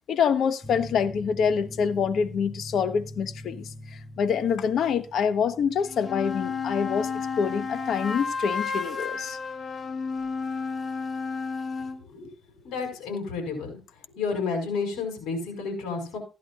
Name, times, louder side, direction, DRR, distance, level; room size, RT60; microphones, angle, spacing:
voice 1, 0.1-9.4, left 7 dB, 65° left, 1.1 m, -26 dB
sound 1, 0.6-11.8, left 1 dB, ahead, 3.4 m, -45 dB
sound 2, 5.8-12.0, left 5 dB, 40° left, 1.8 m, -32 dB
voice 2, 12.6-13.7 14.2-16.2, left 4 dB, 90° left, 5.6 m, -31 dB
15.5 x 11.0 x 2.5 m
cardioid pair, 90°, 0 cm